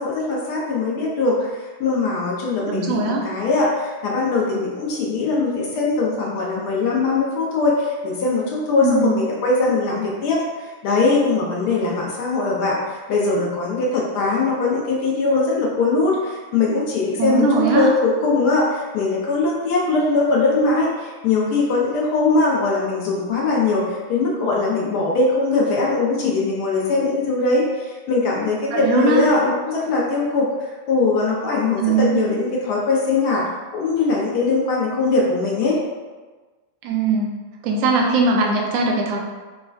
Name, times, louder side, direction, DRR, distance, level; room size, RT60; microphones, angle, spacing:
voice 1, 0.0-30.5 30.9-33.4 33.7-35.8, left 3 dB, 45° left, -3 dB, 0.5 m, -21 dB
voice 2, 2.6-3.2 8.8-9.2 17.2-17.9 28.7-29.3 31.8-32.4 36.8-37.3 37.6-39.2, right 3 dB, 45° right, 0 dB, 0.5 m, -20 dB
3.0 x 2.2 x 2.2 m, 1.3 s
figure-of-eight pair, 90°, 0 cm